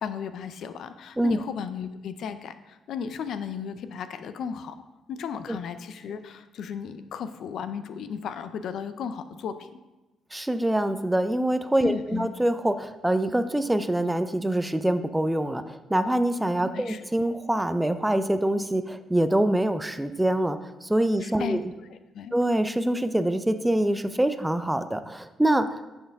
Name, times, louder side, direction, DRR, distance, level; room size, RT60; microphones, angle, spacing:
voice 1, 0.0-4.8 5.1-9.7 11.8-12.3 16.7-17.0 21.2-21.6 21.9-22.4, left 7 dB, 70° left, 11 dB, 0.4 m, -35 dB
voice 2, 10.3-21.6 22.3-25.9, right 1 dB, 10° right, 10 dB, 0.4 m, -25 dB
10.0 x 4.5 x 3.4 m, 1.1 s
cardioid pair, 90°, 0 cm